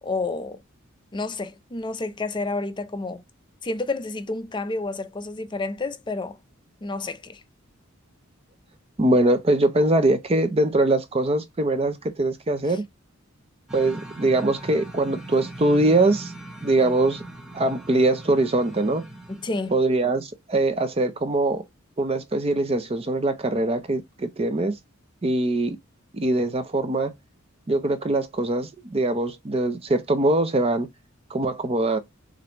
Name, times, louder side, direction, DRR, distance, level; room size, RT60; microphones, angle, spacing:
voice 1, 0.0-0.6 1.1-3.2 3.6-6.4 6.8-7.4 19.4-19.8, left 3 dB, 20° left, 0.5 m, -30 dB
voice 2, 9.0-12.8 13.7-16.3 16.6-17.2 17.5-19.1 19.7-21.6 22.0-24.8 25.2-25.8 26.1-27.1 27.7-30.9 31.3-32.0, right 2 dB, 30° right, 0.5 m, -22 dB
sound 1, 13.7-19.9, right 2 dB, 5° right, 1.0 m, -40 dB
6.4 x 2.6 x 2.9 m
head